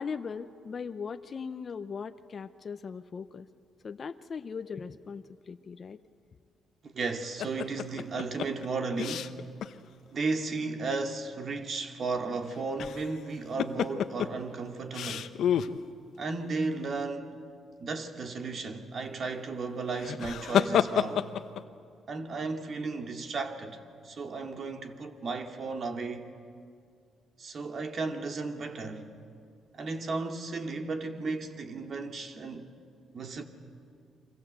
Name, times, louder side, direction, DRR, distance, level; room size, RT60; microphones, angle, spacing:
voice 1, 0.0-3.5 3.8-6.0, left 5 dB, 45° left, 0.8 m, -39 dB
voice 2, 6.8-9.4 10.1-15.3 16.2-17.3 17.8-21.3 22.1-26.3 27.4-29.1 29.7-32.7 33.1-33.4, right 3 dB, 50° right, 2.4 m, -34 dB
sound 1, 7.4-9.7 10.1-10.2 12.5-13.2 13.6-14.3 14.9-15.7 19.9-21.6, left 9 dB, 70° left, 0.9 m, -29 dB
29.0 x 24.0 x 8.1 m
cardioid pair, 90°, 0 cm